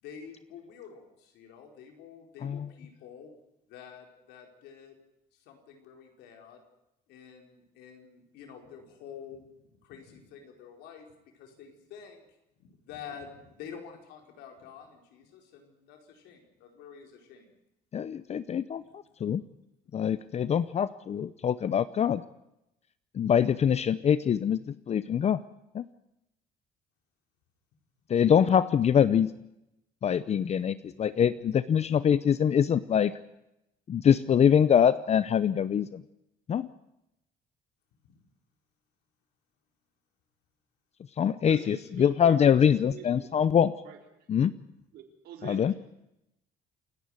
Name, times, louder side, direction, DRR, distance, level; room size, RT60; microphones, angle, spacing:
voice 1, 0.0-3.3 3.7-5.0 5.3-6.6 7.1-9.5 9.8-11.1 11.3-12.2 12.6-17.6 19.0-19.1 19.9-20.5 30.9-31.0 38.0-38.1, left 7 dB, 85° left, 2 dB, 5.0 m, -48 dB
voice 2, 17.9-19.4 19.9-22.2 23.2-25.4 25.7-25.8 28.1-29.3 30.0-33.1 33.9-36.0 36.5-36.7 41.2-43.7 44.3-44.5 45.4-45.7, left 8 dB, 40° left, 15 dB, 0.7 m, -24 dB
voice 3, 41.4-43.4 43.8-44.0 44.9-45.7, right 7 dB, 75° right, 3 dB, 4.5 m, -46 dB
28.5 x 11.0 x 9.2 m, 0.88 s
cardioid pair, 110°, 17 cm